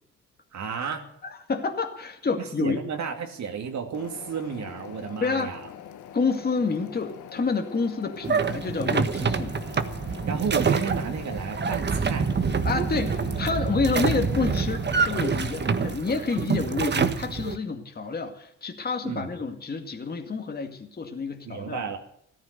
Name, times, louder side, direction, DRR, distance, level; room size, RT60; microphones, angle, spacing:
voice 1, 0.5-1.1 2.6-5.6 10.1-12.3 19.0-19.3 21.5-22.0, right 6 dB, 65° right, 3 dB, 2.6 m, -32 dB
voice 2, 1.2-2.8 5.2-5.5 6.1-9.6 12.6-21.8, left 4 dB, 30° left, 4 dB, 2.2 m, -28 dB
sound 1, 3.9-15.9, left 10 dB, 80° left, 1.5 m, -44 dB
sound 2, 8.2-17.6, right 5 dB, 35° right, 1.5 m, -26 dB
14.5 x 13.5 x 6.7 m, 0.68 s
cardioid pair, 90°, 30 cm